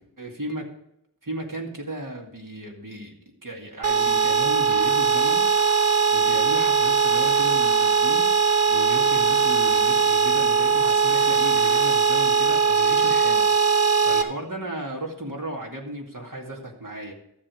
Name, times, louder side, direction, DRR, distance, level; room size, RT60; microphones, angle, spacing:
voice 1, 0.2-0.7 1.2-3.1 3.4-5.8 6.1-8.3 8.7-17.1, right 1 dB, 55° right, 0 dB, 2.4 m, -35 dB
sound 1, 3.8-14.2, right 5 dB, 40° right, 1.1 m, -20 dB
13.0 x 7.5 x 5.0 m, 0.79 s
wide cardioid pair, 40°, 39 cm